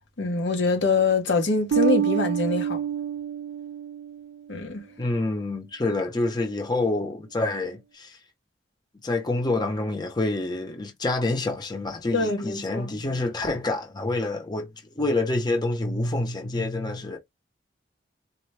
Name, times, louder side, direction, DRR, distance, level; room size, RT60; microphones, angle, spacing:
voice 1, 0.2-2.8 4.5-4.8 12.1-13.0, left 4 dB, 85° left, 1.0 m, -24 dB
Bass guitar, 1.7-4.4, right 9 dB, 85° right, 0.3 m, -27 dB
voice 2, 5.0-8.2 9.0-14.7 15.0-17.2, left 2 dB, 25° left, 0.7 m, -27 dB
4.2 x 2.1 x 3.2 m
head